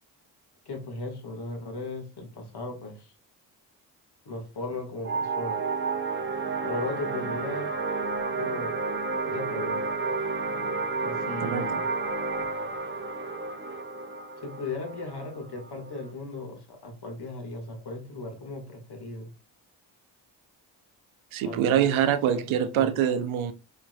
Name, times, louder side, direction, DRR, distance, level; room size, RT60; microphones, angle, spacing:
voice 1, 0.7-3.1 4.3-5.6 6.6-7.7 8.3-8.7 9.2-9.8 11.0-11.8 14.4-19.3 21.4-22.4 22.8-22.9, left 3 dB, 50° left, 2.1 m, -37 dB
sound 1, 5.0-16.1, right 4 dB, 25° right, 1.0 m, -31 dB
voice 2, 11.4-11.8 21.3-23.5, right 9 dB, 75° right, 0.8 m, -25 dB
4.5 x 4.3 x 2.4 m
supercardioid pair, 45°, 48 cm